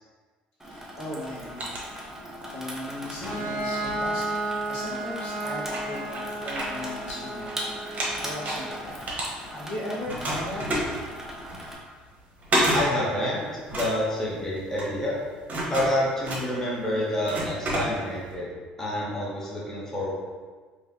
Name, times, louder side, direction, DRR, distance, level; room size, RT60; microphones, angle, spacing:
voice 1, 0.6-1.9 2.5-9.1 9.5-10.9, left 1 dB, 70° left, -8 dB, 1.4 m, -38 dB
Water tap faucet / Sink (filling or washing), 0.6-11.7, equal, 10° right, 0.9 m, -40 dB
sound 1, 1.2-2.5 3.0-4.7 5.3-5.4 5.6-7.5 7.8-9.7 10.1-18.3, right 1 dB, 40° right, 1.2 m, -31 dB
Bowed string instrument, 3.2-8.8, right 2 dB, 35° left, 1.2 m, -33 dB
voice 2, 12.7-15.2 15.7-18.5 18.8-20.1, left 1 dB, 10° left, -6 dB, 1.2 m, -28 dB
3.6 x 3.2 x 2.8 m, 1.4 s
hypercardioid pair, 65°, 4 cm